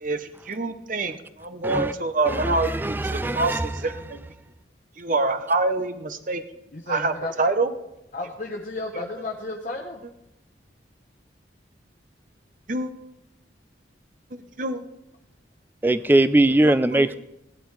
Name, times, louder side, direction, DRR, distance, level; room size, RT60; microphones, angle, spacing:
voice 1, 0.0-4.2 5.0-6.4 6.9-7.7 12.7-12.9 14.3-14.8 16.6-17.0, right 3 dB, 45° right, 10 dB, 0.8 m, -26 dB
voice 2, 2.3-3.7 15.8-17.2, right 1 dB, 10° right, 14 dB, 0.3 m, -21 dB
voice 3, 6.7-7.3 8.1-10.0, left 2 dB, 45° left, 0 dB, 0.9 m, -33 dB
16.5 x 11.5 x 3.2 m, 0.90 s
head